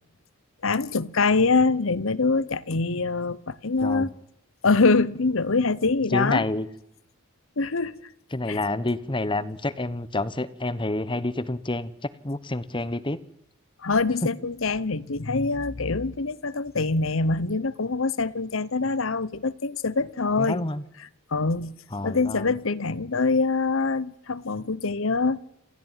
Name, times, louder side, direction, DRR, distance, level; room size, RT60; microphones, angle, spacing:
voice 1, 0.6-4.1 4.6-6.4 7.6-8.0 8.5-8.6 13.8-20.7 21.3-21.7 22.0-25.4, left 3 dB, 65° left, 1.0 m, -24 dB
voice 2, 6.1-6.7 8.3-13.2 20.4-20.8 21.9-22.5, left 2 dB, 25° left, 1.2 m, -28 dB
28.5 x 14.5 x 9.2 m
head